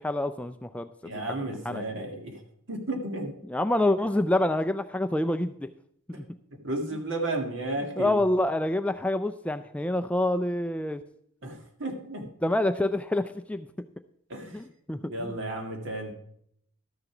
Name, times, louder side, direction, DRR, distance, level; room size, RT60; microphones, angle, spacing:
voice 1, 0.0-1.1 1.7-1.8 3.5-5.7 6.2-6.3 8.0-11.0 12.4-13.7 14.5-15.0, left 1 dB, 5° left, 9 dB, 0.3 m, -27 dB
voice 2, 1.0-2.4 2.7-3.4 6.1-6.2 6.5-8.2 11.4-12.3 14.3-14.6 15.1-16.1, right 2 dB, 60° right, 3 dB, 2.1 m, -33 dB
12.5 x 6.7 x 5.9 m, 0.69 s
head